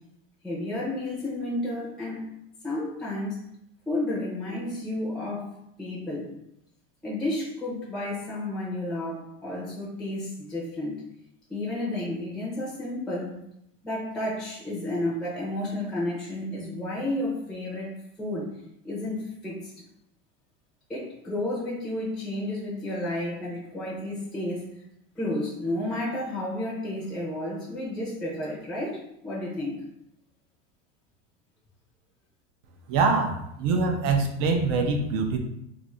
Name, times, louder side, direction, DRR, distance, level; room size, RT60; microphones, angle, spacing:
voice 1, 0.4-2.3 2.6-3.4 3.9-5.5 5.8-6.4 7.0-11.0 11.5-13.4 13.8-17.9 18.2-18.5 18.8-19.7 20.9-24.7 25.2-29.9, left 1 dB, ahead, -5 dB, 0.6 m, -31 dB
voice 2, 32.9-35.4, right 4 dB, 45° right, 5 dB, 0.5 m, -24 dB
2.6 x 2.5 x 4.2 m, 0.78 s
supercardioid pair, 165°, 31 cm